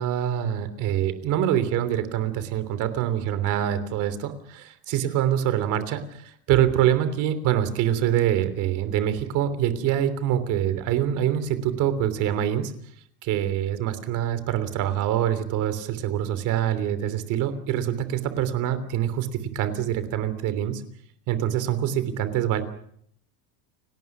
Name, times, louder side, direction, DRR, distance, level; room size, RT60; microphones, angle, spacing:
voice 1, 0.0-12.7 13.2-20.8 21.3-22.6, right 11 dB, 40° right, 12 dB, 3.1 m, -25 dB
29.5 x 19.0 x 6.1 m, 0.66 s
cardioid pair, 180°, 44 cm